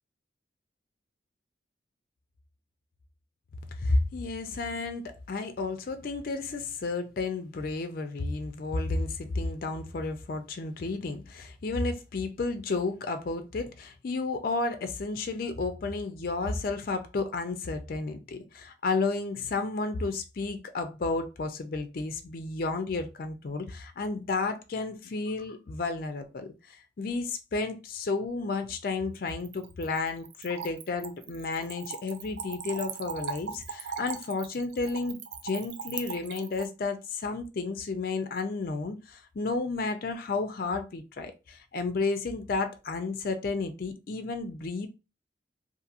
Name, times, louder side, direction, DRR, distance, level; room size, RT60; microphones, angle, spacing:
voice 1, 3.8-44.9, left 3 dB, 50° left, 0.4 m, -32 dB
Splash splatter / Trickle dribble, 29.3-36.7, right 6 dB, 70° right, 0.4 m, -39 dB
2.8 x 2.6 x 2.4 m
head